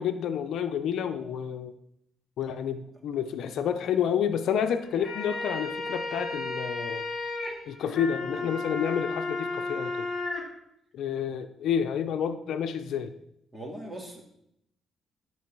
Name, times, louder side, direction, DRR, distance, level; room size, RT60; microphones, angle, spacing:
voice 1, 0.0-1.7 2.4-7.0 7.7-10.1 10.9-13.1, left 8 dB, 75° left, 9 dB, 0.7 m, -29 dB
sound 1, 4.8-10.4, left 3 dB, 45° left, 2.9 m, -33 dB
voice 2, 13.5-14.2, right 1 dB, 15° right, 1 dB, 2.6 m, -39 dB
12.5 x 4.6 x 6.1 m, 0.77 s
cardioid pair, 90°, 0 cm